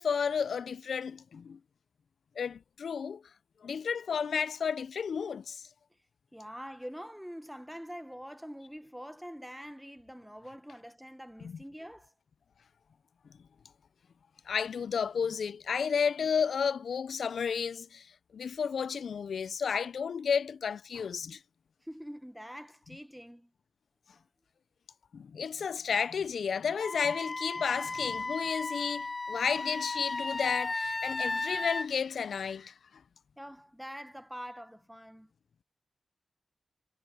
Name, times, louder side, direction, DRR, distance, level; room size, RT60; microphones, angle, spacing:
voice 1, 0.0-1.6 2.4-3.2 3.6-5.7 11.4-11.6 14.5-18.1 18.3-21.4 25.1-32.7, left 6 dB, 85° left, 0.4 m, -32 dB
voice 2, 6.3-12.1 21.8-23.5 33.4-35.3, equal, ahead, 1.2 m, -45 dB
Wind instrument woodwind instrument, 26.8-31.9, left 3 dB, 40° left, 0.5 m, -35 dB
cardioid pair, 65°, 0 cm